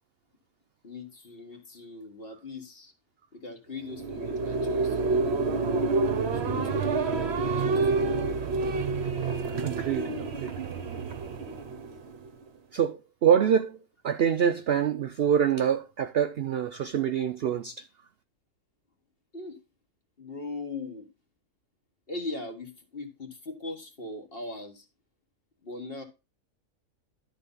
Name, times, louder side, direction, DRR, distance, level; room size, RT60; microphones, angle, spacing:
voice 1, 0.8-2.9 3.3-5.4 6.3-8.1 19.3-19.6 20.2-21.1 22.1-24.9 25.6-26.0, left 2 dB, 40° left, 1.8 m, -40 dB
sound 1, 3.8-12.4, right 3 dB, 50° right, 1.1 m, -28 dB
voice 2, 9.5-10.5 12.7-13.8 14.0-17.8, right 8 dB, 80° right, 0.5 m, -26 dB
11.5 x 4.1 x 5.5 m
omnidirectional pair, 1.6 m